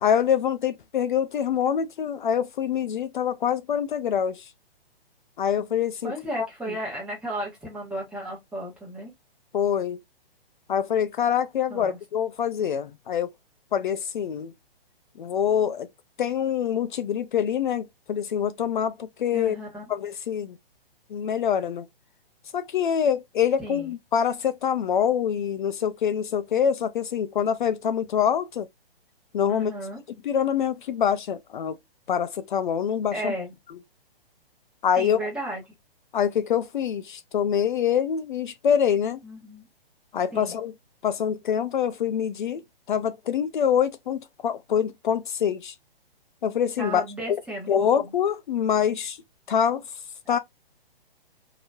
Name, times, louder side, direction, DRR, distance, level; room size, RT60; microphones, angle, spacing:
voice 1, 0.0-4.4 5.4-6.5 9.5-10.0 10.7-13.3 13.7-14.5 15.2-15.9 16.2-19.6 19.9-20.6 21.1-21.9 22.5-28.7 29.3-29.7 30.2-31.8 32.1-33.3 34.8-35.2 36.1-39.2 40.1-40.7 41.0-42.6 42.9-45.7 46.4-47.0 47.3-47.4 47.7-49.2 49.5-49.8 50.3-50.4, left 8 dB, 55° left, 0.4 m, -25 dB
voice 2, 6.0-9.1 11.7-12.0 19.3-19.9 23.6-23.9 29.5-30.0 33.1-33.5 35.0-35.7 39.2-39.7 40.3-40.6 46.8-48.1 50.3-50.4, right 1 dB, 5° right, 1.1 m, -34 dB
3.0 x 2.8 x 2.3 m
hypercardioid pair, 150°, 30 cm